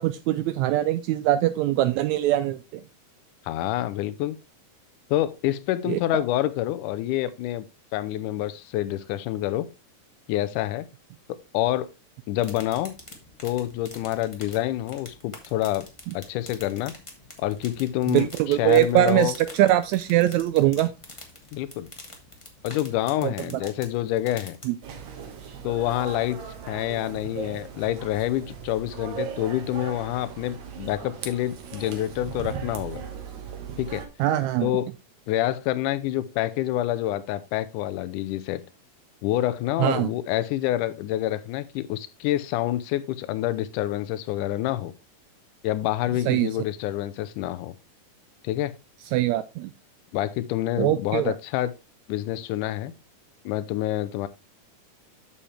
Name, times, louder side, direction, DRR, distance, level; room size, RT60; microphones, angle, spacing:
voice 1, 0.0-2.6 5.8-6.2 18.1-20.9 23.2-23.3 24.7-24.8 34.2-34.7 39.8-40.1 46.3-46.5 49.1-49.7 50.8-51.3, right 14 dB, 90° right, 1.6 m, -22 dB
voice 2, 3.5-4.4 5.1-7.7 7.9-9.7 10.3-10.9 11.5-11.9 12.3-13.0 13.4-15.9 16.1-16.9 17.4-19.3 21.5-21.9 22.6-24.6 25.6-26.4 26.7-33.0 33.8-34.0 34.6-34.9 35.3-38.6 39.2-44.9 45.6-47.8 48.4-48.8 50.1-51.7 52.1-52.9 53.5-54.3, left 14 dB, 80° left, 2.1 m, -27 dB
sound 1, 12.4-24.6, left 2 dB, 30° left, 0.5 m, -46 dB
sound 2, 24.8-34.1, right 6 dB, 65° right, 2.4 m, -38 dB
8.5 x 7.0 x 3.3 m
omnidirectional pair, 3.8 m